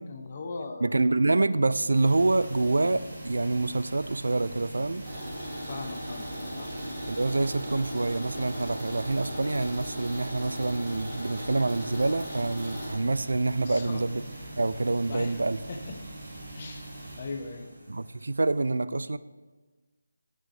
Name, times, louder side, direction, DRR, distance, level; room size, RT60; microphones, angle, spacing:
voice 1, 0.0-1.2 5.7-6.8 13.7-14.1 15.1-15.4 15.7-16.0 16.5-17.7, left 3 dB, 30° left, 3 dB, 0.8 m, -39 dB
voice 2, 0.8-5.1 7.1-14.2 14.6-15.6 17.9-19.2, right 2 dB, 75° right, 15 dB, 0.3 m, -26 dB
sound 1, 1.9-18.6, right 2 dB, 25° right, 2.5 m, -43 dB
sound 2, 5.0-12.9, equal, 10° right, 2.5 m, -38 dB
10.5 x 6.3 x 3.3 m, 1.3 s
figure-of-eight pair, 170°, 0 cm